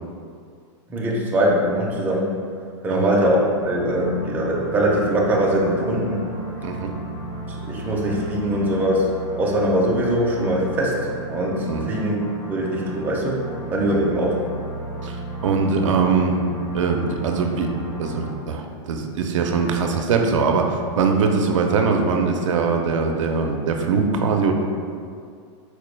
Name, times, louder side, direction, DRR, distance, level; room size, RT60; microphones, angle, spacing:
voice 1, 0.9-2.3 2.8-3.4 3.6-6.2 7.5-9.1 9.3-11.0 11.3-12.1 12.5-13.4 13.7-14.4, right 1 dB, 10° right, -3 dB, 0.4 m, -22 dB
sound 1, 3.6-18.3, right 2 dB, 60° left, 0.9 m, -34 dB
voice 2, 15.4-16.4 16.7-24.5, right 5 dB, 90° right, 3 dB, 0.4 m, -22 dB
4.3 x 2.2 x 3.1 m, 2.2 s
supercardioid pair, 145°, 16 cm